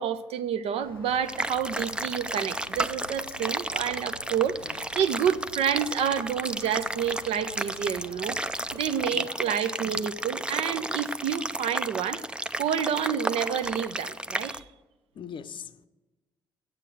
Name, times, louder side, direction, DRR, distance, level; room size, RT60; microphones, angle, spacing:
voice 1, 0.0-8.4 8.7-12.2 12.6-14.6, right 8 dB, 60° right, 0.6 m, -29 dB
Bird, 0.8-9.0, left 4 dB, 90° left, 0.5 m, -48 dB
sound 1, 1.3-14.6, right 1 dB, 10° right, 0.4 m, -33 dB
voice 2, 9.1-9.4 15.1-15.9, left 7 dB, 45° left, 0.6 m, -41 dB
8.3 x 8.0 x 8.9 m
figure-of-eight pair, 45°, 12 cm